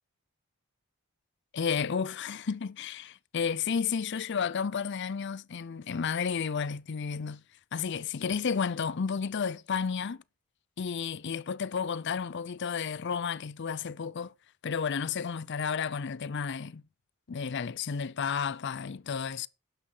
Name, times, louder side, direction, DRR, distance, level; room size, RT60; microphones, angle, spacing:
voice 1, 1.5-7.4 7.7-10.2 10.8-14.3 14.6-16.8 17.3-19.5, left 6 dB, 50° left, 0.5 m, -32 dB
11.5 x 9.9 x 3.9 m
head